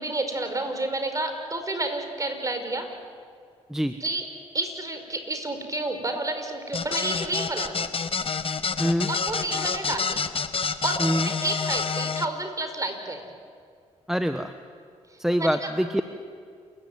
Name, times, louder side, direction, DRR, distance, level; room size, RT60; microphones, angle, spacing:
voice 1, 0.0-2.9 4.0-4.2 4.5-7.9 9.1-10.2 10.8-13.3 15.4-15.5, right 2 dB, 25° right, 6 dB, 4.9 m, -30 dB
sound 1, 6.7-12.2, left 5 dB, 45° left, 1.4 m, -28 dB
voice 2, 8.8-9.1 11.0-11.3 14.1-14.5 15.2-16.0, equal, 5° right, 8 dB, 1.1 m, -24 dB
29.0 x 15.0 x 9.5 m, 2.1 s
supercardioid pair, 60°, 13 cm